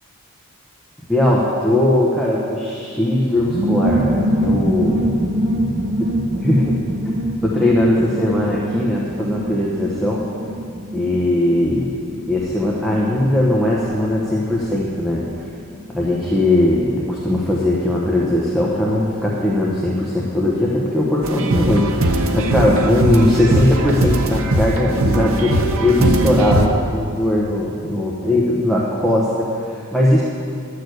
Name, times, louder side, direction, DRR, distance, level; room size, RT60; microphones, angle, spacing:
voice 1, 1.1-5.0 6.4-6.8 7.4-10.2 10.9-12.0 12.3-15.5 15.9-25.5 25.8-30.2, left 1 dB, ahead, -6 dB, 1.1 m, -19 dB
sound 1, 3.3-19.6 19.9-20.0 20.2-20.6, equal, 35° right, 1.0 m, -25 dB
sound 2, 21.2-26.7, right 1 dB, 75° right, 1.0 m, -19 dB
12.5 x 6.7 x 8.0 m, 2.4 s
head